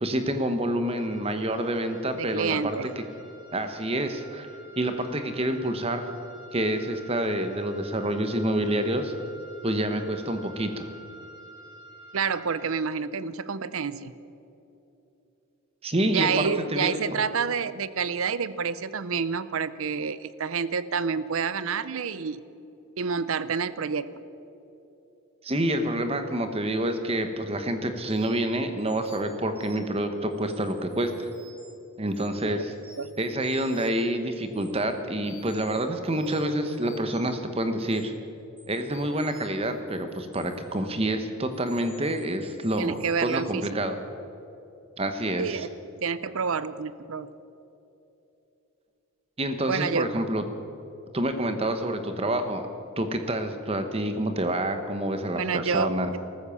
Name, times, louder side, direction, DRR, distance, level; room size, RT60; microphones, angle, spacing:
voice 1, 0.0-3.0 3.5-4.5 4.8-6.1 6.5-9.1 9.6-10.9 15.8-17.0 25.4-31.3 32.0-32.7 33.2-38.1 38.7-44.0 45.0-45.7 49.4-50.4 51.1-52.6 53.0-56.1, right 1 dB, 25° right, 8 dB, 1.1 m, -28 dB
sound 1, 0.8-12.7, right 1 dB, 85° left, 3.8 m, -49 dB
voice 2, 2.2-2.9 12.1-14.1 16.1-22.4 23.0-24.1 32.4-32.6 33.0-33.1 42.8-43.6 45.4-45.7 46.0-47.3 49.7-50.0 55.3-56.2, right 5 dB, 75° right, 16 dB, 0.6 m, -28 dB
sound 2, 28.1-28.4 28.8-29.9 30.3-31.7 32.1-32.4 32.7-34.0 34.3-34.7 35.2-37.3 37.8-38.0 38.6-40.8 41.5-43.4, left 1 dB, 10° right, 4.6 m, -53 dB
14.5 x 13.5 x 7.1 m, 2.9 s
head